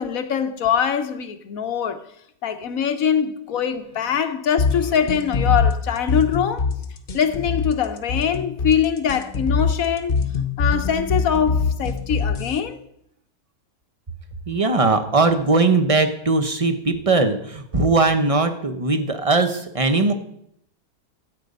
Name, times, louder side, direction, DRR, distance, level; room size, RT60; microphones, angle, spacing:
voice 1, 0.0-2.0 2.4-6.7 7.1-10.2 10.6-12.8, left 8 dB, 60° left, 1.2 m, -23 dB
sound 1, 4.6-12.6, left 5 dB, 35° left, 1.0 m, -23 dB
voice 2, 14.5-20.1, right 3 dB, 30° right, 0.7 m, -19 dB
13.5 x 8.4 x 5.4 m
omnidirectional pair, 1.9 m